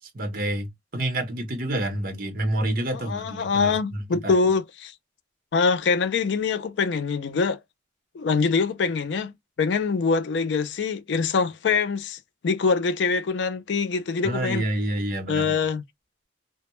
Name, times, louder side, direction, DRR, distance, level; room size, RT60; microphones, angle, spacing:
voice 1, 0.1-4.4 14.2-15.6, right 1 dB, 50° right, 0.7 m, -28 dB
voice 2, 3.1-4.9 5.5-7.6 8.1-9.3 9.6-14.6 15.3-15.8, left 5 dB, 70° left, 0.4 m, -24 dB
2.1 x 2.1 x 2.9 m
head